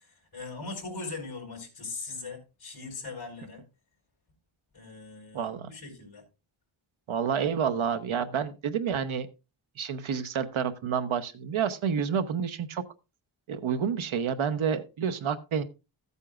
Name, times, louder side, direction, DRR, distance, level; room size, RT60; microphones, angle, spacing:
voice 1, 0.0-3.6 4.7-6.2, left 3 dB, 50° left, -3 dB, 4.2 m, -40 dB
voice 2, 5.3-5.7 7.1-9.3 9.8-12.8 13.5-15.6, right 7 dB, 75° right, 10 dB, 1.0 m, -29 dB
14.5 x 8.3 x 2.4 m, 0.28 s
wide cardioid pair, 165°, 48 cm